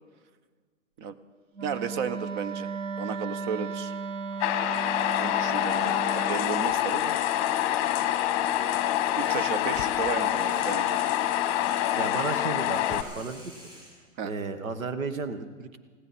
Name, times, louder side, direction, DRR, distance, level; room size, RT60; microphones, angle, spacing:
voice 1, 1.6-2.7 3.0-4.0 5.2-7.2 9.2-11.0 14.2-14.3, right 6 dB, 35° right, 14 dB, 0.8 m, -33 dB
Wind instrument woodwind instrument, 1.6-6.4, right 5 dB, 70° right, 1.2 m, -35 dB
sound 1, 4.4-13.0, left 12 dB, 30° left, 1.0 m, -26 dB
sound 2, 8.8-14.0, equal, 15° right, 6.2 m, -51 dB
voice 2, 12.0-13.5 14.2-15.8, right 4 dB, 90° right, 11 dB, 1.4 m, -33 dB
20.0 x 15.5 x 4.2 m, 1.6 s
hypercardioid pair, 145°, 40 cm